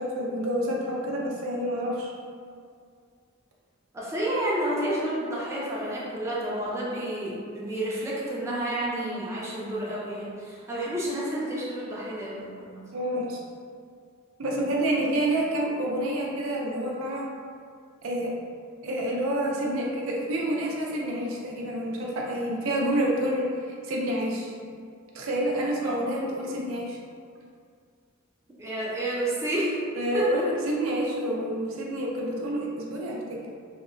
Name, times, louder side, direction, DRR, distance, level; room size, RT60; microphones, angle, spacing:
voice 1, 0.0-2.1 12.9-13.4 14.4-17.3 18.0-18.3 18.8-23.5 23.9-24.5 25.1-27.0 30.0-33.6, right 1 dB, 85° right, -2 dB, 0.4 m, -28 dB
voice 2, 3.9-12.8 25.8-26.0 28.6-29.8 30.1-30.4, right 1 dB, 15° right, -7 dB, 0.4 m, -30 dB
2.8 x 2.1 x 2.5 m, 2.2 s
head